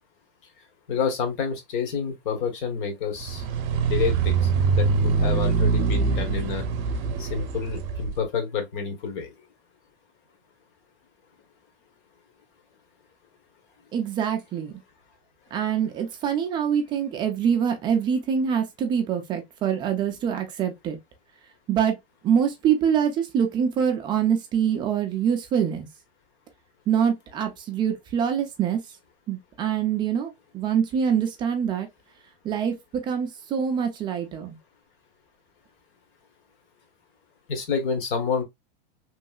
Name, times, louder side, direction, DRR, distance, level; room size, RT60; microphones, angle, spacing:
voice 1, 0.9-3.4 3.8-6.6 7.2-9.3 37.5-38.4, left 6 dB, 55° left, 1.2 m, -28 dB
sound 1, 3.2-8.2, right 5 dB, 35° right, 0.7 m, -24 dB
voice 2, 13.9-14.8 15.5-21.0 21.7-22.0 22.2-25.9 26.9-28.8 29.3-31.9 32.4-34.6, right 8 dB, 15° right, 0.3 m, -25 dB
3.1 x 2.7 x 2.3 m
supercardioid pair, 145°, 30 cm